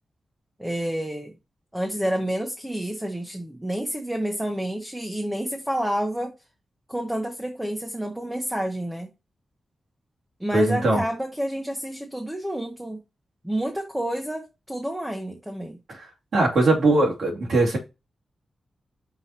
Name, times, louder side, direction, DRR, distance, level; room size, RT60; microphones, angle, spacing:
voice 1, 0.6-1.3 1.7-6.3 6.9-9.1 10.4-13.0 13.4-15.8, right 1 dB, 5° right, 0.9 m, -29 dB
voice 2, 10.5-11.0 15.9-16.1 16.3-17.8, right 2 dB, 70° right, 2.6 m, -20 dB
5.8 x 4.7 x 4.3 m
wide cardioid pair, 165°, 0 cm